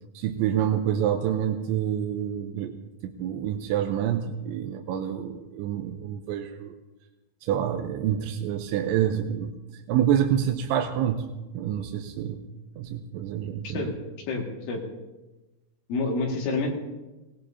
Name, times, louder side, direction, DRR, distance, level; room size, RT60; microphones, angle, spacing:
voice 1, 0.1-2.8 3.0-6.7 7.4-9.5 9.9-12.5 12.8-13.9, right 10 dB, 80° right, 4 dB, 3.0 m, -27 dB
voice 2, 14.3-14.8 15.9-16.7, left 3 dB, 80° left, -1 dB, 4.6 m, -28 dB
21.0 x 18.5 x 2.8 m, 1.1 s
omnidirectional pair, 5.6 m